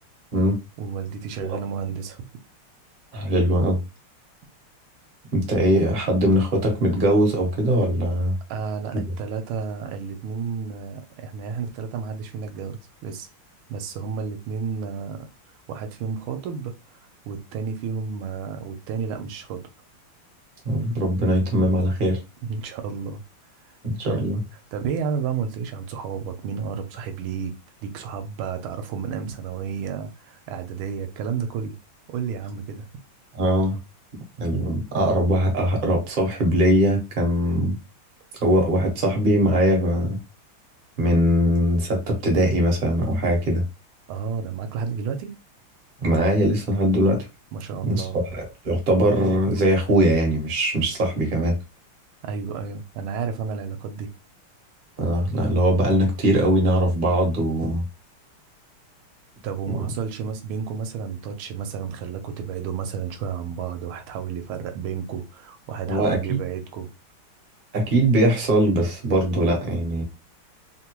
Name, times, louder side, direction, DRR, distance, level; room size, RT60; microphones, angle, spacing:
voice 1, 0.8-2.2 8.5-13.3 13.7-15.3 15.7-19.6 22.5-23.2 24.0-24.2 24.7-27.5 27.8-31.7 32.1-32.8 44.1-45.4 47.5-48.2 52.2-54.1 59.4-66.9, right 6 dB, 80° right, 1.4 m, -31 dB
voice 2, 3.1-3.8 5.3-8.3 20.6-22.2 23.8-24.4 33.3-33.8 34.4-37.8 38.4-40.2 41.0-43.6 46.0-47.3 47.8-48.1 48.3-51.5 55.0-57.8 65.9-66.4 67.7-70.0, equal, 45° right, 0.6 m, -21 dB
3.5 x 2.2 x 2.9 m
omnidirectional pair, 2.4 m